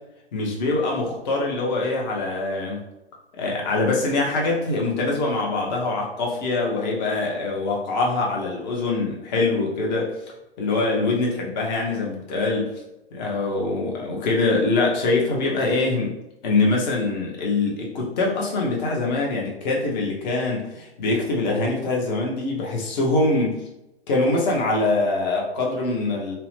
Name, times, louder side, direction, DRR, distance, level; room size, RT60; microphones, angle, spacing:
voice 1, 0.3-2.8 3.4-10.1 10.6-12.7 13.1-16.2 16.4-23.6 24.1-26.4, left 3 dB, 40° left, -1 dB, 0.9 m, -23 dB
2.8 x 2.0 x 3.2 m, 0.90 s
figure-of-eight pair, 115°, 32 cm